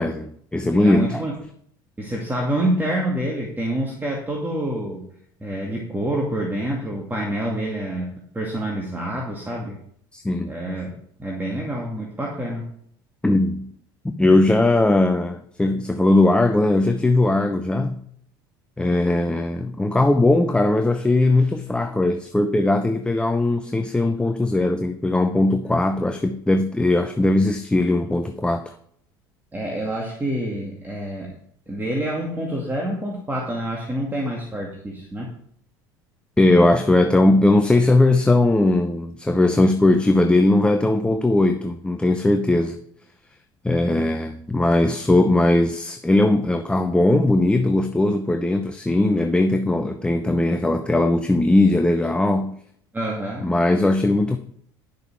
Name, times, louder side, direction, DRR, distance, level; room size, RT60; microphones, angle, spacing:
voice 1, 0.0-1.2 10.1-10.5 13.2-13.7 14.0-18.0 18.8-28.6 36.4-42.8 43.6-52.6 53.4-54.4, left 2 dB, 10° left, 0.8 m, -19 dB
voice 2, 0.8-1.4 2.0-5.0 5.4-9.8 10.4-10.9 11.2-12.7 29.5-31.4 31.7-35.3 52.9-53.5, right 1 dB, 15° right, 2.3 m, -27 dB
10.0 x 6.7 x 4.7 m
hypercardioid pair, 70°, 12 cm